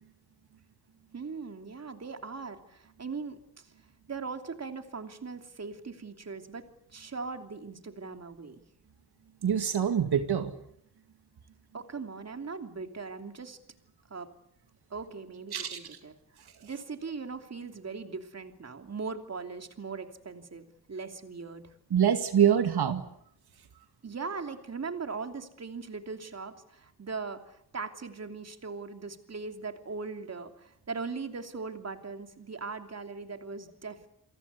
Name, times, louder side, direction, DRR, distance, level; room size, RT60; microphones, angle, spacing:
voice 1, 1.1-3.7 4.1-8.6 11.7-13.6 14.1-14.3 14.9-16.1 16.6-21.7 24.0-34.1, right 4 dB, 40° right, 7 dB, 3.0 m, -40 dB
voice 2, 9.4-10.5 15.5-15.8 21.9-23.0, right 8 dB, 80° right, 8 dB, 2.2 m, -25 dB
29.0 x 23.0 x 8.4 m, 0.73 s
wide cardioid pair, 140°, 38 cm